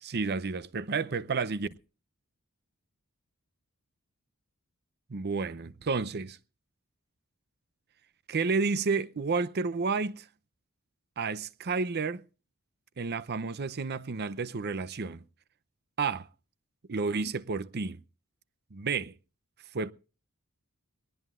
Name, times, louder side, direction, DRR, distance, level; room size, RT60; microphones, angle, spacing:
voice 1, 0.0-1.7 5.1-6.4 8.3-10.3 11.2-12.2 13.0-15.2 16.0-16.3 16.9-18.0 18.7-19.2 19.7-19.9, right 4 dB, 50° right, 0.7 m, -31 dB
22.0 x 18.5 x 2.5 m
head